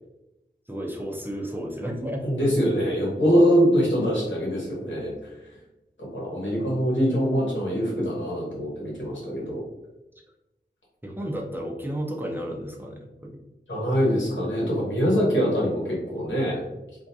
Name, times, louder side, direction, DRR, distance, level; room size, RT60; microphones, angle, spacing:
voice 1, 0.7-2.3 11.0-13.4, equal, 10° right, -1 dB, 0.5 m, -32 dB
voice 2, 2.2-5.3 6.0-9.6 13.7-16.6, equal, 90° left, -5 dB, 1.0 m, -23 dB
2.4 x 2.1 x 2.7 m, 0.98 s
wide cardioid pair, 45°, 19 cm